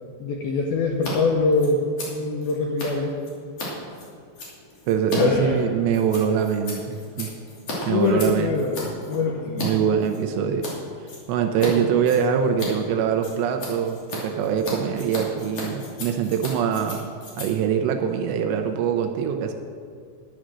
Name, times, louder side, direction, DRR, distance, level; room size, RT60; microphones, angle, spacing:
voice 1, 0.2-1.8 2.1-3.2 5.2-5.6 7.9-9.6, left 3 dB, 80° left, 0 dB, 2.2 m, -23 dB
Scissors, 0.9-1.1 1.4-9.7 10.0-10.7 11.1-11.7 12.0-18.8, left 2 dB, 40° left, 3.1 m, -36 dB
voice 2, 4.9-7.3 7.9-8.5 9.6-10.7 11.3-17.0 17.4-19.5, right 7 dB, 80° right, 5 dB, 2.7 m, -23 dB
11.0 x 10.0 x 6.3 m, 2.2 s
omnidirectional pair, 5.4 m